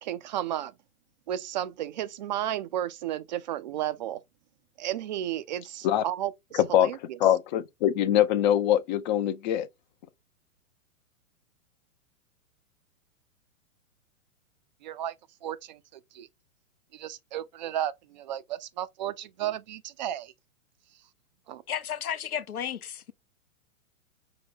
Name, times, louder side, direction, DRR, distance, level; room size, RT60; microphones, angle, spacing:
voice 1, 0.0-0.7 1.3-4.2 4.8-7.2 14.8-15.1 15.4-16.3 16.9-20.3 21.5-21.6, right 12 dB, 35° right, 0.4 m, -33 dB
voice 2, 6.5-6.9 7.2-9.7, left 11 dB, 35° left, 0.5 m, -23 dB
voice 3, 21.7-23.1, left 9 dB, 85° left, 0.7 m, -33 dB
5.5 x 2.2 x 3.6 m
figure-of-eight pair, 115°, 43 cm